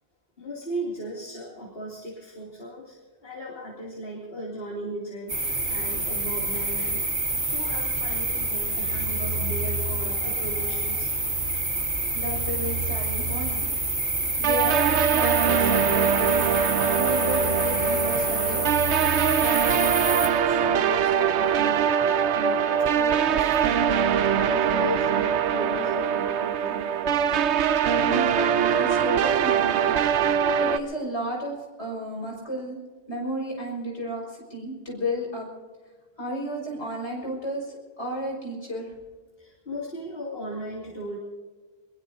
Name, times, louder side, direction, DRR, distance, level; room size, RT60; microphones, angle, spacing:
voice 1, 0.4-7.1 7.3-11.1 11.9-12.0 19.7-27.3 39.4-41.2, equal, 60° left, -3 dB, 3.0 m, -37 dB
sound 1, 5.3-20.3, right 2 dB, 65° right, 3.3 m, -27 dB
voice 2, 12.1-13.7 14.4-18.6 28.0-29.9 30.3-32.8 33.1-35.5 36.2-38.9, equal, 85° left, -1 dB, 6.3 m, -33 dB
sound 2, 14.4-30.8, right 8 dB, 90° right, 1.0 m, -23 dB
24.0 x 21.5 x 2.7 m, 1.4 s
omnidirectional pair, 1.1 m